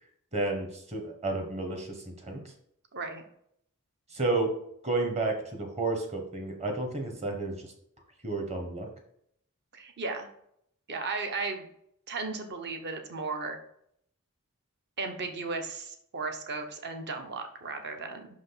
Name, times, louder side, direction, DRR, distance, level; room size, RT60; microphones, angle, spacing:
voice 1, 0.3-2.0 2.2-2.4 4.1-4.5 4.8-7.7 8.2-8.9, right 2 dB, 30° right, 4 dB, 1.3 m, -31 dB
voice 2, 2.9-3.2 9.7-10.3 10.9-11.7 12.1-13.6 15.0-18.3, right 3 dB, 50° right, 5 dB, 1.0 m, -35 dB
6.0 x 5.1 x 4.0 m, 0.70 s
head